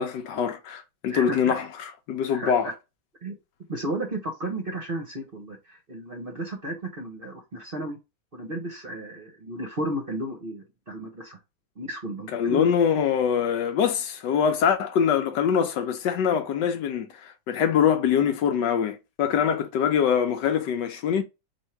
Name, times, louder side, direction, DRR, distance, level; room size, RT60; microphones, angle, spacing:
voice 1, 0.0-2.7 12.3-21.2, left 7 dB, 70° left, 1.2 m, -24 dB
voice 2, 1.1-1.6 2.3-2.7 3.2-3.3 3.7-8.0 8.3-11.4 11.8-12.7, right 1 dB, 40° right, 0.9 m, -33 dB
3.6 x 2.9 x 4.4 m
omnidirectional pair, 2.1 m